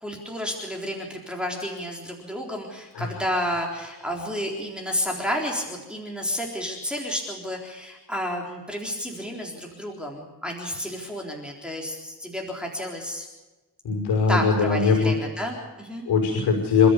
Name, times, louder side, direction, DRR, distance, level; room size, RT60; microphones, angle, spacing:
voice 1, 0.0-13.3 14.3-16.1, equal, ahead, -1 dB, 3.9 m, -31 dB
voice 2, 13.8-15.1 16.1-16.9, left 5 dB, 75° left, 2 dB, 5.8 m, -21 dB
28.5 x 13.5 x 6.8 m, 1.2 s
wide cardioid pair, 150°, 40 cm